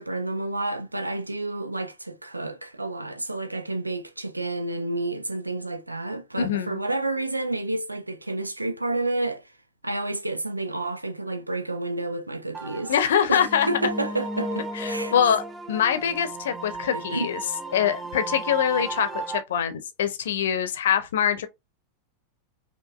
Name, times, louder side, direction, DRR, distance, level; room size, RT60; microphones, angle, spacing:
voice 1, 0.0-9.5 9.8-12.9 13.3-15.1 16.9-17.3, right 2 dB, 85° right, 0.4 m, -30 dB
voice 2, 6.4-6.8 12.9-13.7 14.7-15.4 15.7-17.4 17.7-21.5, left 8 dB, 60° left, 0.7 m, -24 dB
sound 1, 12.5-19.4, right 2 dB, 15° right, 0.7 m, -34 dB
5.2 x 2.5 x 2.5 m
figure-of-eight pair, 90°, 0 cm